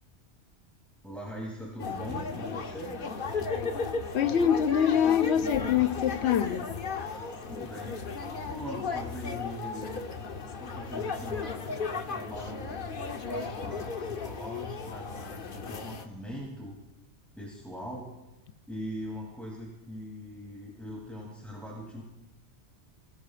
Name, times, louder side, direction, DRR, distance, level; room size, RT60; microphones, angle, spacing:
voice 1, 1.0-3.0 7.5-10.0 10.6-12.8 13.2-16.8 17.3-18.1 18.7-22.0, equal, ahead, 2.8 m, -41 dB
sound 1, 1.8-16.1, left 4 dB, 55° left, 1.1 m, -35 dB
voice 2, 4.1-6.7, left 9 dB, 75° left, 0.9 m, -25 dB
27.0 x 17.5 x 2.5 m
omnidirectional pair, 1.2 m